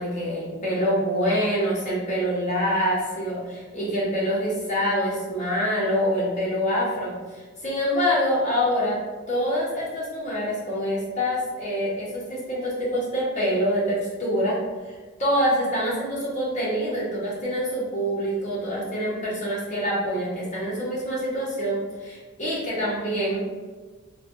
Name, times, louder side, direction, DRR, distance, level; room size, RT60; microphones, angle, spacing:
voice 1, 0.0-9.0 9.3-14.6 14.8-23.4, equal, 30° left, -7 dB, 0.8 m, -26 dB
3.2 x 2.2 x 2.5 m, 1.4 s
head